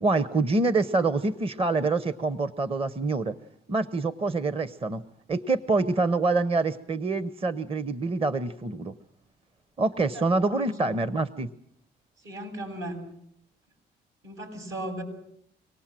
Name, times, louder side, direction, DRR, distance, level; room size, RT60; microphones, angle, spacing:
voice 1, 0.0-3.3 3.7-5.0 5.3-8.9 9.8-11.5, right 3 dB, 30° right, 14 dB, 0.8 m, -26 dB
voice 2, 10.1-11.0 12.2-13.0 14.2-15.0, right 1 dB, 75° right, 6 dB, 7.4 m, -37 dB
24.5 x 19.0 x 7.5 m, 0.69 s
cardioid pair, 90°, 20 cm